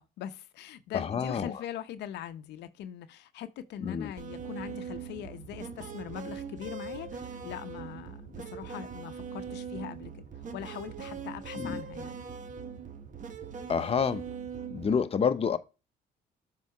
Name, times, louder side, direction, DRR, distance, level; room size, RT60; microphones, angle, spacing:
voice 1, 0.0-10.2 10.5-12.2, left 10 dB, 75° left, 0.7 m, -41 dB
voice 2, 0.9-1.5 3.8-4.1 11.6-11.8 13.7-14.2 14.7-15.6, left 6 dB, 35° left, 0.8 m, -28 dB
sound 1, 4.2-14.9, right 6 dB, 45° right, 1.2 m, -41 dB
7.3 x 3.8 x 4.7 m
supercardioid pair, 80°, 18 cm